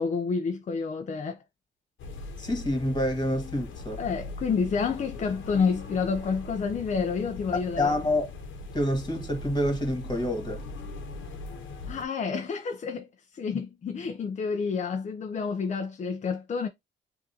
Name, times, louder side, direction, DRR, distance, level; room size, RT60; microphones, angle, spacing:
voice 1, 0.0-1.4 4.0-7.9 11.9-13.1 13.3-16.7, left 5 dB, 35° left, 0.5 m, -29 dB
sound 1, 2.0-12.0, left 3 dB, 75° left, 1.0 m, -40 dB
voice 2, 2.4-4.0 7.5-8.3 8.7-10.7, left 1 dB, 20° left, 2.0 m, -27 dB
7.3 x 2.6 x 2.8 m
cardioid pair, 90°, 20 cm